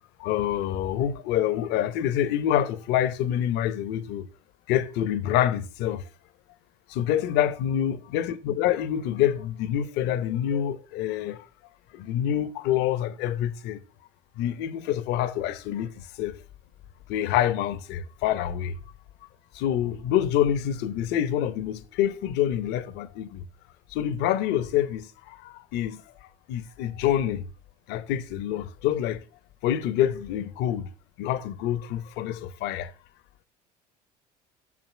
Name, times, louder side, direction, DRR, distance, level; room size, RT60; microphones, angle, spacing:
voice 1, 0.2-4.3 4.7-6.0 6.9-11.5 11.9-13.8 14.4-16.4 17.1-18.8 19.5-23.4 23.9-27.4 27.9-29.2 29.6-30.9 31.2-32.9, left 11 dB, 65° left, 0.9 m, -27 dB
6.6 x 6.1 x 5.5 m
hypercardioid pair, 70°, 19 cm